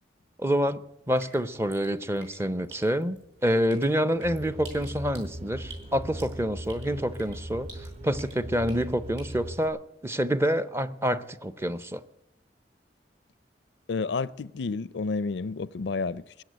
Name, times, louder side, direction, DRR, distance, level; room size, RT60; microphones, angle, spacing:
voice 1, 0.4-7.7 8.0-12.0, equal, 15° right, 0.6 m, -27 dB
Drip, 0.9-9.7, right 3 dB, 80° right, 6.3 m, -52 dB
sound 1, 4.2-9.6, equal, 35° right, 1.2 m, -39 dB
voice 2, 13.9-16.4, left 4 dB, 75° left, 0.5 m, -30 dB
21.0 x 8.3 x 8.1 m
head